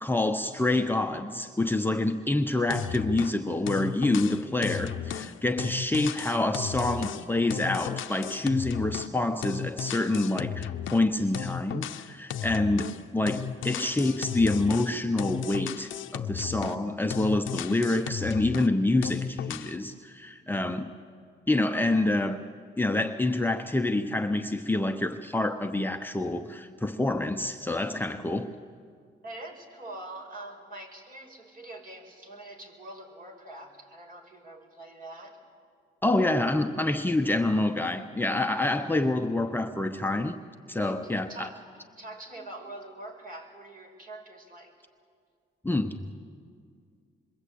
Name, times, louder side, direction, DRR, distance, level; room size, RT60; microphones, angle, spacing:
voice 1, 0.0-20.9 21.5-22.4 22.8-28.5 36.0-41.5 45.6-46.0, left 2 dB, 10° left, 5 dB, 0.9 m, -27 dB
sound 1, 2.7-3.4 3.7-9.2 9.4-11.1 11.3-13.0 13.3-16.9 17.1-18.7 19.0-19.8, left 9 dB, 80° left, 0.9 m, -35 dB
voice 2, 29.2-35.4 40.8-41.6 42.0-44.7, right 2 dB, 45° right, 3 dB, 5.2 m, -44 dB
26.5 x 22.5 x 8.6 m, 2.2 s
cardioid pair, 90°, 20 cm